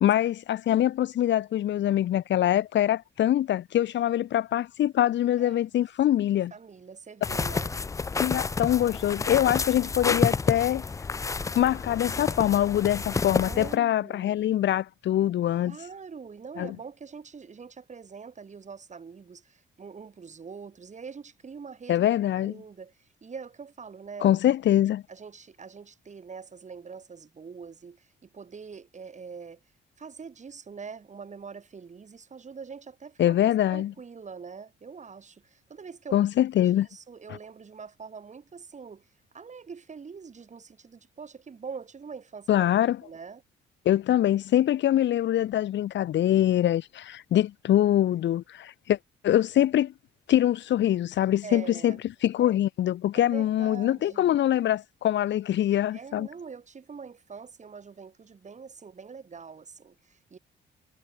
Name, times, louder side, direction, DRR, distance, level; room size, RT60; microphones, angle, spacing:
voice 1, 0.0-6.5 8.2-10.8 11.5-15.8 16.6-16.7 21.9-22.5 24.2-25.0 33.2-33.9 36.1-36.9 42.5-43.0 43.8-49.0 49.2-49.9 50.3-52.0 52.2-56.3, left 12 dB, 65° left, 0.9 m, -24 dB
voice 2, 5.4-5.8 6.3-7.8 13.3-14.5 15.6-22.1 22.4-24.3 25.1-29.6 30.0-36.3 36.9-39.1 39.3-42.7 43.0-43.4 51.4-52.0 53.1-54.3 55.9-60.4, right 5 dB, 35° right, 2.8 m, -44 dB
sound 1, 7.2-13.8, left 4 dB, 15° left, 0.3 m, -30 dB
cardioid pair, 90°, 20 cm